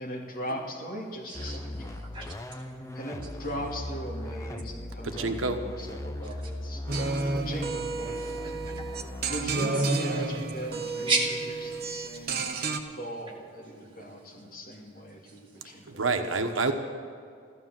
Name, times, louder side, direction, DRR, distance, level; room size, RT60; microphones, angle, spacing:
voice 1, 0.0-2.0 2.9-8.2 9.3-11.1 11.8-12.4 12.9-16.0, equal, 45° left, -1 dB, 2.5 m, -39 dB
sound 1, 1.3-9.6, left 1 dB, 15° left, 0.6 m, -39 dB
voice 2, 1.3-2.8 3.2-3.3 6.2-6.5 6.8-7.3 8.1-9.0 9.7-10.2 10.7-11.8 12.1-12.2 13.7-14.8 15.1-15.8, right 3 dB, 25° right, -3 dB, 2.7 m, -37 dB
voice 3, 5.2-5.6 15.9-16.7, right 3 dB, 80° right, 5 dB, 1.2 m, -27 dB
sound 2, 6.9-12.8, right 3 dB, 50° right, 1.1 m, -31 dB
14.5 x 12.5 x 7.5 m, 2.3 s
head